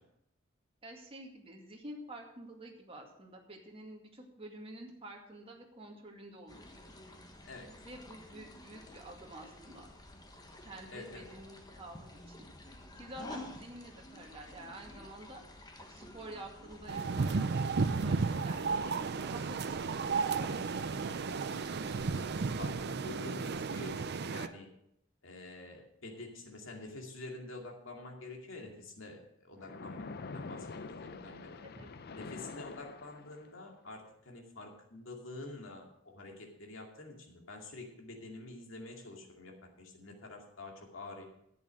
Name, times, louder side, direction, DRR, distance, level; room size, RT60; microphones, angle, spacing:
voice 1, 0.8-6.7 7.8-9.9 10.6-12.5 13.0-15.4 15.8-18.6 19.2-21.6 31.6-31.9, right 1 dB, 30° right, 0 dB, 2.1 m, -49 dB
sound 1, 6.5-22.3, left 1 dB, 20° left, 1.3 m, -52 dB
voice 2, 10.9-11.3 22.1-24.7 25.2-30.1 30.3-31.5 32.1-41.2, left 2 dB, 75° left, 1 dB, 2.4 m, -47 dB
sound 2, 16.9-24.5, right 4 dB, 55° right, 0.5 m, -33 dB
Splash splatter, 29.6-33.6, left 4 dB, 50° left, 0.6 m, -45 dB
10.5 x 8.3 x 6.4 m, 0.77 s
head